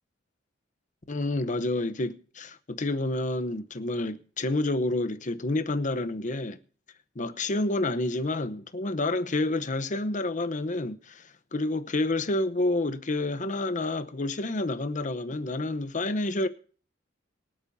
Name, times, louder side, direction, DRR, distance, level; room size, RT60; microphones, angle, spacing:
voice 1, 1.1-6.6 7.2-16.5, left 2 dB, 40° left, 0.9 m, -29 dB
24.0 x 8.5 x 2.7 m
head